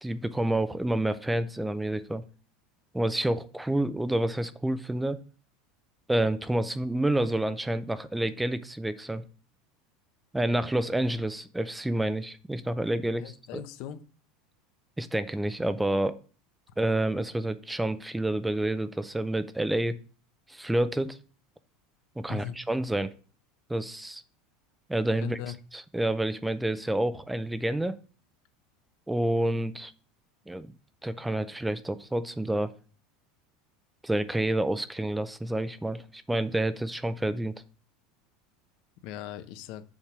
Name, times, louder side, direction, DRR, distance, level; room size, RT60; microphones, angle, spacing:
voice 1, 0.0-2.2 2.9-5.2 6.1-9.2 10.3-13.2 13.5-13.6 15.0-16.2 16.8-20.0 20.5-21.2 22.2-23.1 23.7-24.2 24.9-25.4 25.9-28.0 29.1-29.9 30.5-30.7 31.0-32.7 34.0-37.5, right 1 dB, 5° right, 13 dB, 0.4 m, -28 dB
voice 2, 13.2-14.0 22.3-22.6 25.2-25.6 39.0-39.8, left 11 dB, 50° left, 11 dB, 0.7 m, -39 dB
7.2 x 3.4 x 5.9 m, 0.38 s
supercardioid pair, 170°, 0 cm